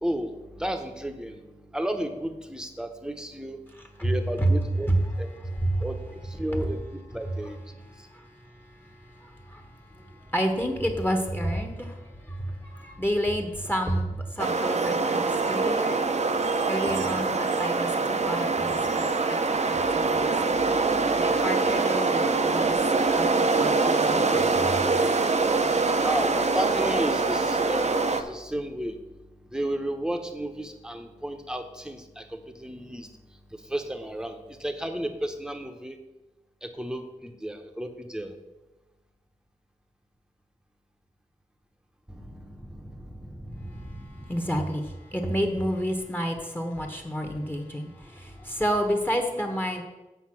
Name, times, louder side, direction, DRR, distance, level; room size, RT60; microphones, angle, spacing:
voice 1, 0.0-1.4 1.7-3.6 4.0-4.9 5.2-5.3 5.8-6.8 7.1-7.6 26.0-29.0 29.5-33.1 33.7-34.3 34.6-36.0 36.6-38.3 42.1-44.2, right 1 dB, 5° right, 7 dB, 0.9 m, -33 dB
voice 2, 5.4-5.9 8.1-8.3 8.7-16.0 16.7-18.8 19.3-19.4 19.7-20.2 21.2-22.8 23.2-25.1 43.7-49.8, equal, 15° left, 4 dB, 1.2 m, -30 dB
sound 1, 14.4-28.2, right 3 dB, 50° right, 0.6 m, -24 dB
8.1 x 5.7 x 5.9 m, 1.1 s
wide cardioid pair, 75°, 14 cm